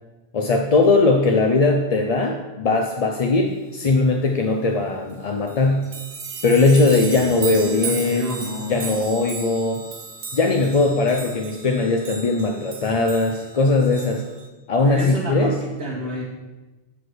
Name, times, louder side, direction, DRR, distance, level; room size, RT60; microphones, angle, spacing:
voice 1, 0.3-5.8 6.4-8.3 8.7-9.8 10.3-14.2 14.7-15.5, left 3 dB, 45° left, 2 dB, 0.5 m, -19 dB
sound 1, 5.1-5.2 5.5-14.5, right 5 dB, 65° right, 1.1 m, -35 dB
voice 2, 7.5-9.0 14.8-16.2, right 1 dB, 85° right, -5 dB, 1.6 m, -30 dB
6.3 x 4.9 x 6.3 m, 1.2 s
omnidirectional pair, 1.1 m